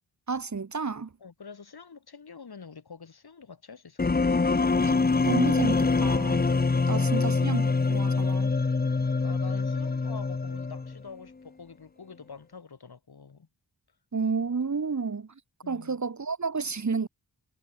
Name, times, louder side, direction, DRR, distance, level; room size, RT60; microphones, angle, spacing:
voice 1, 0.3-1.1 4.8-5.0 5.2-6.5 6.9-8.5 14.1-15.3 15.7-17.1, right 5 dB, 40° right, 1.6 m, -31 dB
voice 2, 1.2-4.4 6.7-7.3 9.0-13.5 15.6-16.0, left 5 dB, 60° left, 3.8 m, -46 dB
sound 1, 4.0-11.0, left 4 dB, 20° left, 0.8 m, -25 dB
wide cardioid pair, 75°, 42 cm